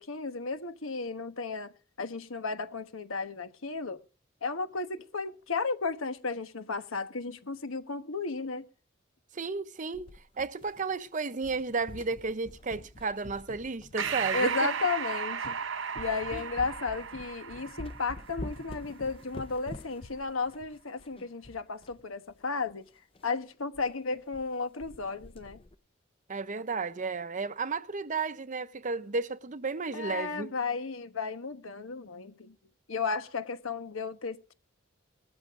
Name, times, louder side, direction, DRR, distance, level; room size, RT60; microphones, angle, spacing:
voice 1, 0.0-4.0 4.4-8.7 14.3-15.6 15.9-22.8 23.2-25.6 29.9-32.6 32.9-34.5, left 4 dB, 80° left, 1.2 m, -34 dB
voice 2, 9.3-10.1 10.4-14.7 16.3-16.4 26.3-30.5, right 4 dB, 40° right, 0.7 m, -33 dB
sound 1, 9.9-11.1 11.4-14.4 14.9-15.0 15.4-15.6 16.0-22.0 22.3-22.4 22.6-22.7 23.2-23.3 23.7-23.9 24.1-24.5 24.8-25.8, left 1 dB, 25° left, 0.6 m, -46 dB
Breathing, 14.0-18.8, right 6 dB, 65° right, 0.9 m, -35 dB
19.5 x 13.5 x 2.5 m
head